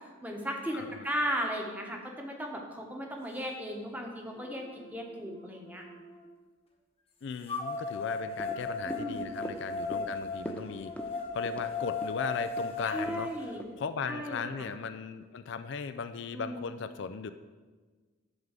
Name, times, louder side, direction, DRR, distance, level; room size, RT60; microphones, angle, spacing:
voice 1, 0.2-5.9 8.8-9.3 12.8-13.6 14.1-14.7 16.3-16.6, equal, 10° right, 1 dB, 1.1 m, -36 dB
voice 2, 0.7-1.1 7.2-10.9 11.3-17.3, left 5 dB, 60° left, 10 dB, 0.4 m, -37 dB
sound 1, 3.7-3.8 4.3-6.2 7.5-13.5, left 3 dB, 30° left, 1.1 m, -37 dB
sound 2, 8.4-14.8 15.2-15.3, equal, 5° left, 0.6 m, -45 dB
11.0 x 3.8 x 7.3 m, 1.4 s
head